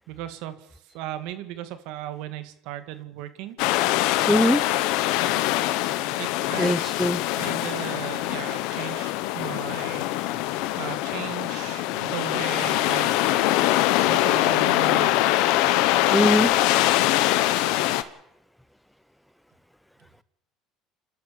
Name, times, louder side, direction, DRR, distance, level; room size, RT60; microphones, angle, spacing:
voice 1, 0.1-3.6 4.3-4.9 6.2-6.9 7.2-10.5 10.8-15.3, right 12 dB, 80° right, 11 dB, 2.2 m, -37 dB
sound 1, 3.6-18.0, left 15 dB, 80° left, 1.4 m, -23 dB
voice 2, 4.3-4.6 6.6-7.2 16.1-16.5, equal, ahead, 15 dB, 1.0 m, -21 dB
29.0 x 13.0 x 7.0 m, 0.79 s
supercardioid pair, 105°, 0 cm